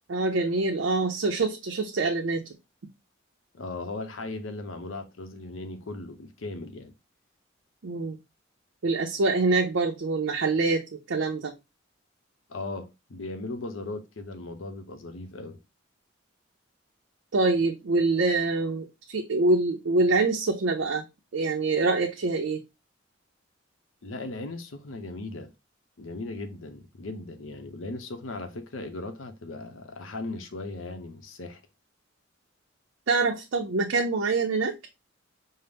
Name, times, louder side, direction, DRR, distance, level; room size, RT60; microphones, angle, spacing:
voice 1, 0.1-2.4 7.8-8.2 8.8-11.5 17.3-21.0 21.3-22.6 33.1-34.7, right 3 dB, 75° right, 0.6 m, -25 dB
voice 2, 3.5-6.9 12.5-15.6 24.0-25.5 26.0-31.6, left 2 dB, 90° left, 0.7 m, -37 dB
5.4 x 2.0 x 3.4 m
head